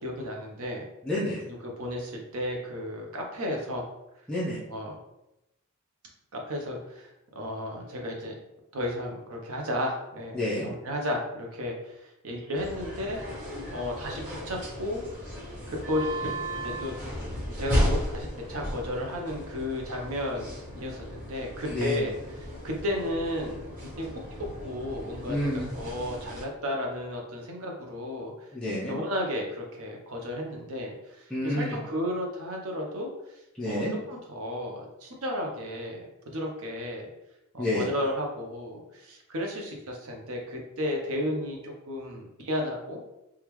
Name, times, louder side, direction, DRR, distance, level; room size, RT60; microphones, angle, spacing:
voice 1, 0.0-0.9 1.8-3.9 4.7-5.0 6.3-7.1 7.4-8.3 8.7-11.9 12.2-13.2 13.7-15.0 15.7-16.1 16.6-16.9 17.6-22.1 22.4-23.7 24.0-24.1 24.4-28.5 28.9-33.1 33.6-37.1 37.5-43.0, left 1 dB, 75° right, 1 dB, 0.7 m, -33 dB
voice 2, 1.0-1.4 4.3-4.6 10.3-10.7 21.7-22.0 25.3-25.7 28.5-29.0 31.3-31.8 33.6-33.9 37.6-37.9, left 1 dB, 5° left, -10 dB, 0.5 m, -29 dB
sound 1, 12.5-26.4, equal, 35° right, 1.3 m, -35 dB
3.5 x 2.3 x 3.0 m, 0.91 s
head